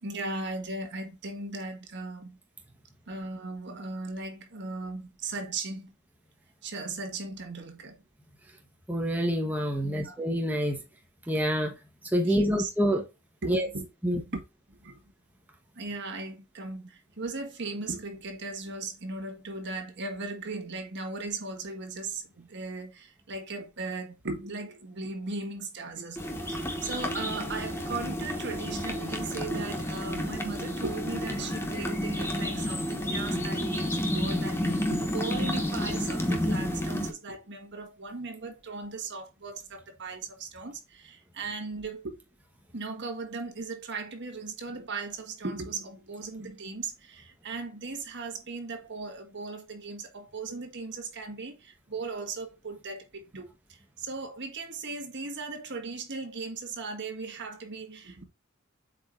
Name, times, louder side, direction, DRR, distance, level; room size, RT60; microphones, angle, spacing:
voice 1, 0.0-2.4 3.1-5.9 6.6-8.0 9.8-10.2 12.2-12.7 13.4-14.4 14.7-15.0 15.7-42.2 42.7-58.2, right 3 dB, 55° right, 1.7 m, -37 dB
voice 2, 8.9-10.8 11.3-11.7 12.0-13.1 13.4-13.7 14.0-14.2, equal, 10° right, 1.0 m, -27 dB
sound 1, 26.2-37.1, left 1 dB, 10° left, 1.2 m, -31 dB
7.8 x 4.7 x 2.5 m
head